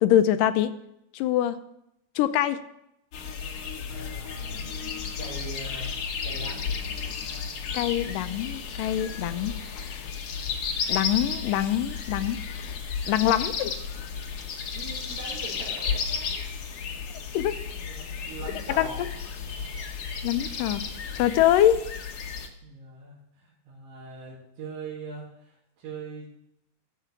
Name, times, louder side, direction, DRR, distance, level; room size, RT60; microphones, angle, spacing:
voice 1, 0.0-0.7 1.1-1.6 2.2-2.6 7.7-10.1 10.9-12.8 13.1-13.7 17.3-17.6 18.8-18.9 20.2-20.8 21.1-21.9, left 11 dB, 85° left, 11 dB, 2.2 m, -24 dB
sound 1, 3.1-22.5, left 6 dB, 65° left, 1.5 m, -33 dB
voice 2, 3.9-4.8 5.2-5.9 6.2-6.7 14.7-16.5 17.4-19.0 22.6-26.3, right 3 dB, 85° right, -8 dB, 4.0 m, -42 dB
14.0 x 5.0 x 6.8 m, 0.80 s
omnidirectional pair, 3.9 m